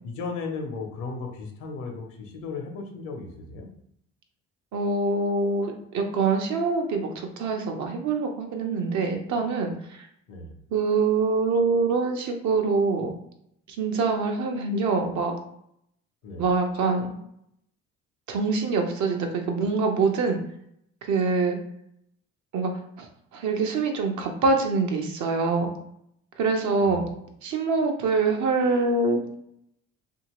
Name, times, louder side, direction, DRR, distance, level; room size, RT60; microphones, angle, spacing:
voice 1, 0.0-3.7 10.3-10.5 16.2-16.5 26.8-27.1, left 4 dB, 75° left, 3 dB, 0.8 m, -35 dB
voice 2, 4.7-9.7 10.7-13.1 13.7-15.3 16.4-17.1 18.3-20.4 21.0-21.6 22.5-22.7 23.0-23.1 23.3-25.7 26.4-27.1 27.4-29.2, right 4 dB, 65° right, 3 dB, 0.7 m, -24 dB
2.9 x 2.7 x 2.9 m, 0.73 s
supercardioid pair, 70°, 31 cm